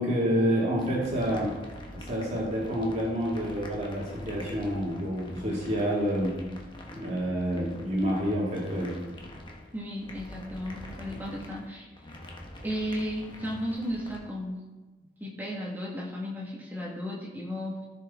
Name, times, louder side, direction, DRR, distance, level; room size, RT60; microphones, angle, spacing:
voice 1, 0.0-1.5 1.9-6.3 6.9-8.9, equal, 40° right, -4 dB, 2.1 m, -28 dB
sound 1, 0.8-14.2, left 1 dB, 25° left, 1.1 m, -45 dB
voice 2, 9.7-11.9 12.6-14.6 15.2-17.9, equal, 10° right, -4 dB, 1.7 m, -34 dB
13.5 x 5.8 x 3.7 m, 1.2 s
head